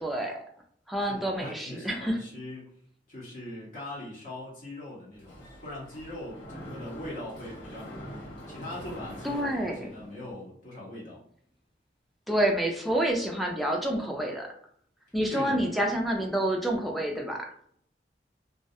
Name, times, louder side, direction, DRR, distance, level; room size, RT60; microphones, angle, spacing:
voice 1, 0.0-0.4 0.9-2.2 9.2-9.9 12.3-14.5 15.1-17.5, right 1 dB, ahead, 0 dB, 0.3 m, -28 dB
voice 2, 1.0-2.7 3.1-11.2 15.3-15.8, left 1 dB, 45° left, -6 dB, 0.7 m, -41 dB
Mechanisms, 5.1-10.3, equal, 70° left, 1.3 m, -44 dB
2.3 x 2.2 x 2.6 m, 0.63 s
head